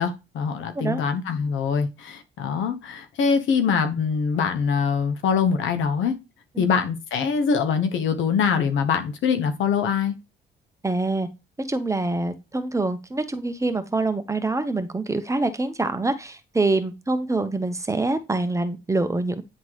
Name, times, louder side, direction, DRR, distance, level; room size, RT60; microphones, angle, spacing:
voice 1, 0.0-6.2 6.6-10.2, left 6 dB, 75° left, 1.2 m, -23 dB
voice 2, 10.8-11.3 11.6-19.4, right 2 dB, 15° right, 1.0 m, -25 dB
9.6 x 3.7 x 3.2 m
cardioid pair, 90°, 20 cm